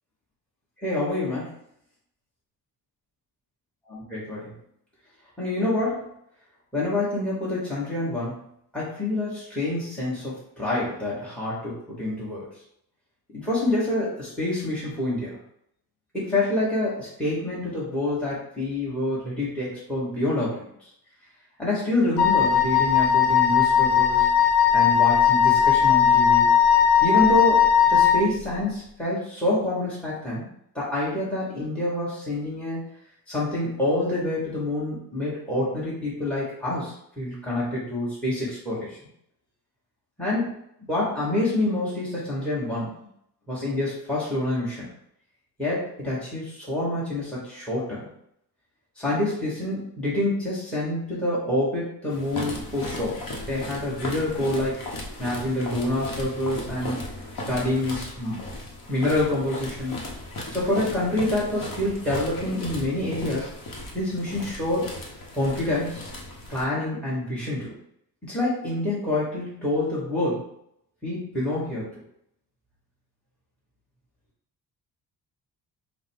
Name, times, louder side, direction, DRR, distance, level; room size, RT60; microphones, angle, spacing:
voice 1, 0.8-1.5 3.9-4.5 5.4-6.1 6.7-8.4 8.7-12.5 13.3-15.4 16.1-20.7 21.6-24.3 24.7-26.5 27.0-30.5 30.7-32.8 33.3-39.0 40.2-40.5 40.9-42.9 43.5-44.9 45.6-48.1 49.0-53.2 53.5-57.0 57.5-58.4 58.9-60.0 60.5-63.5 63.9-64.9 65.3-66.0 66.5-67.7 68.2-70.5 71.0-71.9, left 1 dB, 5° left, -8 dB, 1.6 m, -27 dB
Wind instrument woodwind instrument, 22.2-28.3, left 8 dB, 90° left, 0.7 m, -18 dB
sound 1, 52.1-66.7, left 1 dB, 55° left, 1.0 m, -36 dB
5.4 x 2.2 x 3.5 m, 0.72 s
cardioid pair, 130°, 39 cm